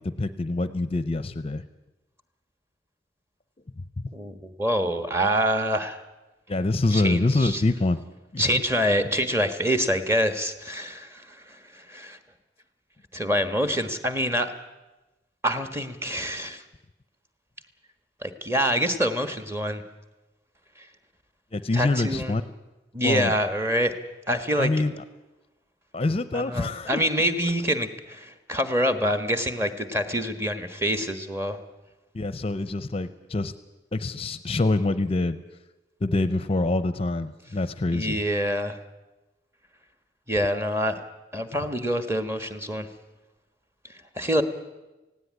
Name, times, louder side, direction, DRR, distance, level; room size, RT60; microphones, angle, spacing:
voice 1, 0.0-1.6 3.8-4.1 6.5-8.0 8.3-8.6 21.5-22.4 23.0-23.3 24.6-25.0 25.9-27.0 27.4-27.5 32.1-33.5 33.9-35.4 36.0-38.2, left 2 dB, 30° left, 13 dB, 0.6 m, -25 dB
voice 2, 4.1-6.0 6.9-7.6 8.4-12.2 13.1-14.5 15.4-16.6 18.2-19.8 21.7-22.4 22.9-23.9 24.3-24.7 26.3-31.6 37.9-38.8 40.3-41.0 41.3-42.9 44.2-44.4, equal, 15° right, 9 dB, 1.4 m, -26 dB
18.0 x 16.5 x 9.6 m, 1.1 s
head